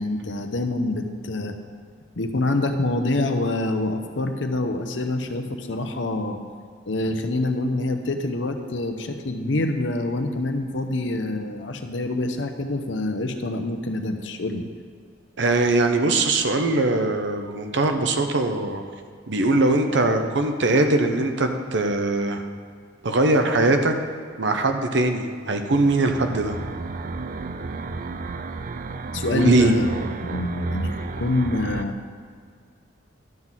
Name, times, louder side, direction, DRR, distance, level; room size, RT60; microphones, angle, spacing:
voice 1, 0.0-1.5 2.2-6.4 6.9-14.6 29.1-29.9 30.2-32.0, left 2 dB, 75° left, 6 dB, 0.8 m, -26 dB
voice 2, 15.4-18.8 19.3-22.4 23.0-23.9 24.4-26.6 29.3-29.7, right 2 dB, 70° right, 6 dB, 0.9 m, -21 dB
sound 1, 25.7-31.8, right 3 dB, 45° right, 0.4 m, -32 dB
12.0 x 4.0 x 7.3 m, 2.1 s
head